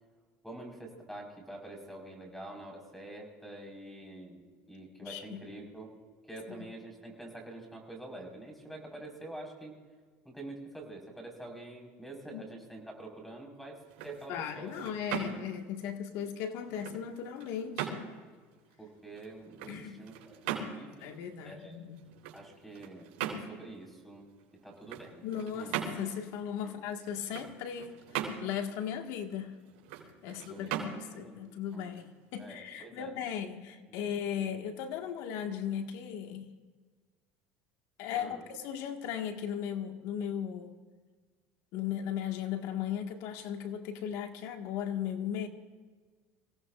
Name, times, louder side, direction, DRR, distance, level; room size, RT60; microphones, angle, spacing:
voice 1, 0.4-5.9 6.3-9.7 10.2-14.8 15.1-15.5 18.8-21.1 21.4-21.8 22.3-24.3 24.6-25.3 25.5-25.8 26.6-26.8 30.2-30.8 31.1-31.5 31.7-31.9 32.4-33.1 34.4-34.5 38.1-38.4, right 2 dB, 5° left, 4.7 m, -47 dB
voice 2, 5.0-5.4 6.5-6.7 12.3-12.4 14.3-18.0 19.7-20.0 20.7-22.0 25.2-29.5 30.2-36.5 38.0-40.8 41.7-45.5, left 9 dB, 70° left, 1.7 m, -37 dB
sound 1, 13.8-32.6, right 7 dB, 85° right, 3.6 m, -41 dB
26.5 x 17.5 x 2.5 m
supercardioid pair, 120°, 6 cm